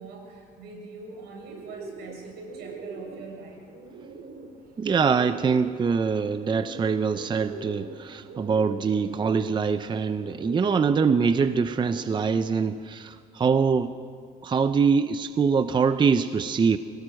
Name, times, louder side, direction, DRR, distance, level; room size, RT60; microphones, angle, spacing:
voice 1, 0.0-3.7, right 3 dB, 80° right, 2 dB, 6.6 m, -43 dB
Bird, 1.0-12.7, right 4 dB, 60° right, 3.6 m, -43 dB
voice 2, 4.8-13.9 14.4-16.8, right 5 dB, 25° right, 11 dB, 0.6 m, -24 dB
26.0 x 17.5 x 6.4 m, 2.3 s
cardioid pair, 110°, 17 cm